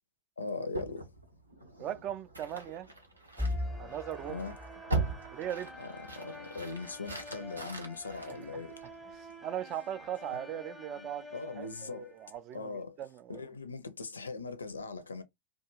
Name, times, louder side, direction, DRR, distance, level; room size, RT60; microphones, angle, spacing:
voice 1, 0.4-1.1 4.3-4.6 5.8-8.8 11.0-11.1 11.3-12.2 12.5-13.0 13.3-15.2, left 3 dB, 75° left, 0.4 m, -40 dB
sound 1, 0.7-9.2, right 3 dB, 85° right, 0.6 m, -40 dB
voice 2, 1.8-2.9 3.8-4.4 5.3-5.7 8.3-8.6 9.1-11.2 11.6-13.4, right 11 dB, 35° right, 0.3 m, -39 dB
sound 2, 3.4-12.4, left 1 dB, 5° right, 0.8 m, -43 dB
2.4 x 2.3 x 2.9 m
figure-of-eight pair, 90°, 0 cm